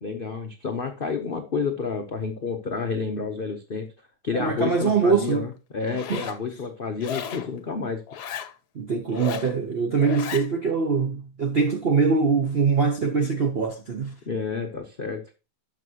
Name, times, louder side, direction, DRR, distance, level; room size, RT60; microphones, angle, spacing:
voice 1, 0.0-3.9 4.2-8.0 14.3-15.2, left 5 dB, 85° left, 0.4 m, -30 dB
voice 2, 4.3-5.4 6.1-6.2 8.7-14.2, right 5 dB, 65° right, 0.5 m, -23 dB
Zipper (clothing), 5.8-6.4 7.0-7.5 8.1-8.5 9.1-9.5 10.0-10.5, left 9 dB, 60° left, 1.2 m, -35 dB
12.5 x 5.8 x 2.8 m
omnidirectional pair, 2.2 m